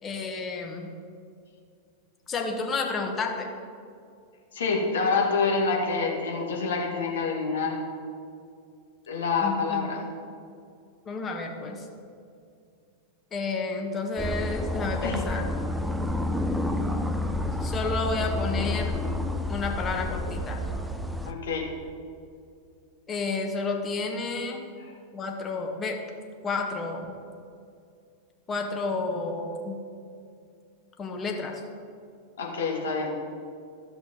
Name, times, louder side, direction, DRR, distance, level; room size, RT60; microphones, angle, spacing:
voice 1, 0.0-0.9 2.3-3.5 9.4-9.8 11.0-11.9 13.3-15.4 17.6-19.0 19.5-20.6 23.1-24.6 25.1-26.0 26.4-27.0 28.5-29.8 31.0-31.6, left 3 dB, 25° left, 2 dB, 1.4 m, -31 dB
voice 2, 4.5-7.8 9.1-10.0 15.0-15.2 21.3-21.8 32.4-33.1, left 4 dB, 65° left, -1 dB, 2.0 m, -27 dB
sound 1, 14.2-21.3, left 1 dB, 5° right, 0.6 m, -29 dB
13.5 x 6.1 x 5.5 m, 2.3 s
figure-of-eight pair, 90°, 0 cm